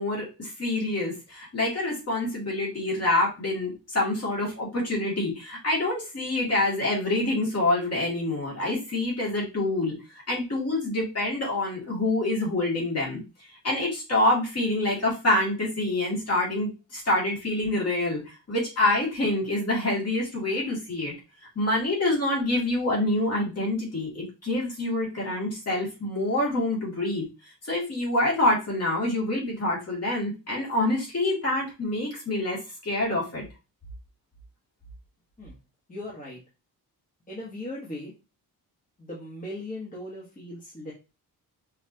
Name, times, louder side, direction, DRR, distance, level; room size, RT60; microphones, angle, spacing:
voice 1, 0.0-13.2 13.6-21.1 21.6-27.3 27.6-33.5, left 2 dB, 40° left, -4 dB, 2.5 m, -26 dB
voice 2, 35.9-36.4 37.3-38.1 39.0-40.9, left 1 dB, 20° left, -6 dB, 1.5 m, -38 dB
5.6 x 3.3 x 2.9 m, 0.28 s
wide cardioid pair, 160°, 38 cm